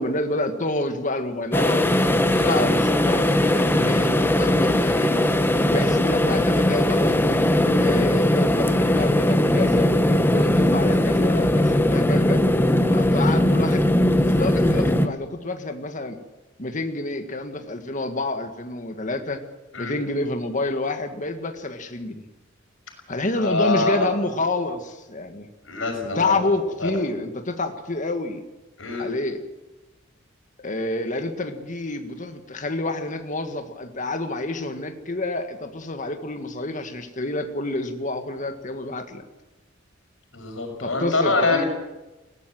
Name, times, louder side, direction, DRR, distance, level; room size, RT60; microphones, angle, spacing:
voice 1, 0.0-1.9 2.3-5.3 5.7-7.4 7.8-9.9 10.2-12.4 12.9-13.9 14.2-16.2 16.6-19.4 19.8-22.2 23.1-25.5 26.1-28.4 29.0-29.4 30.6-39.2 40.8-41.6, left 2 dB, 40° left, 6 dB, 1.8 m, -28 dB
sound 1, 1.5-15.1, left 1 dB, 10° left, 1.3 m, -19 dB
voice 2, 23.3-24.1 25.7-26.4 26.8-26.9 28.8-29.1 40.3-41.6, left 3 dB, 85° left, 4 dB, 5.9 m, -24 dB
21.0 x 17.0 x 7.7 m, 1.1 s
head